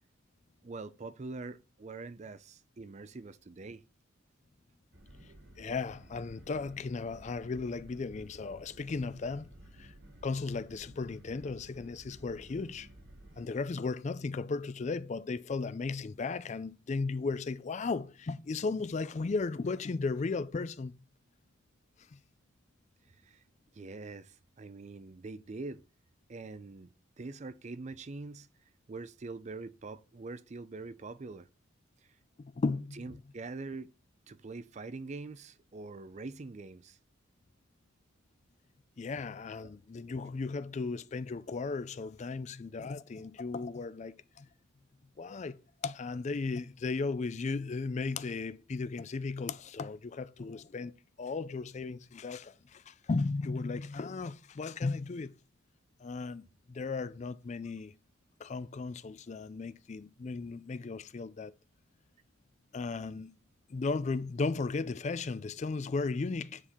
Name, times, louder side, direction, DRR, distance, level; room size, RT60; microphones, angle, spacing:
voice 1, 0.6-3.8 5.2-5.4 23.1-23.4 23.7-25.8 26.3-28.5 28.9-31.5 33.0-33.9 34.3-37.0 39.6-39.7, right 3 dB, 35° right, 0.4 m, -44 dB
sound 1, 4.9-13.5, right 1 dB, 60° right, 1.7 m, -54 dB
voice 2, 5.6-9.5 9.8-9.9 10.2-12.9 13.4-21.0 32.4-33.2 39.0-44.5 45.2-45.6 45.8-50.9 51.2-55.3 56.0-56.4 56.7-57.9 58.4-61.5 62.7-63.3 63.7-66.6, left 4 dB, 35° left, 0.4 m, -35 dB
9.7 x 3.7 x 4.3 m
head